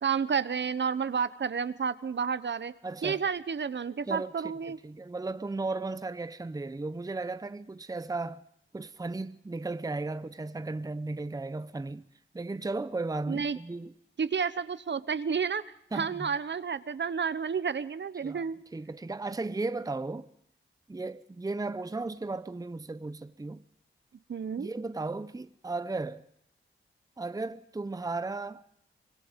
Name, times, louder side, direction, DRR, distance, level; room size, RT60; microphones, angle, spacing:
voice 1, 0.0-2.7 3.0-4.8 13.3-13.6 14.2-15.6 15.9-18.6 24.3-24.7, right 6 dB, 55° right, 0.9 m, -30 dB
voice 2, 2.8-3.2 4.1-4.5 4.8-8.4 8.7-12.0 12.3-13.9 15.9-16.4 18.2-18.4 18.7-20.3 20.9-23.6 24.6-26.2 27.2-28.6, right 3 dB, 15° right, 0.7 m, -35 dB
24.5 x 22.5 x 5.2 m
cardioid pair, 70°, 21 cm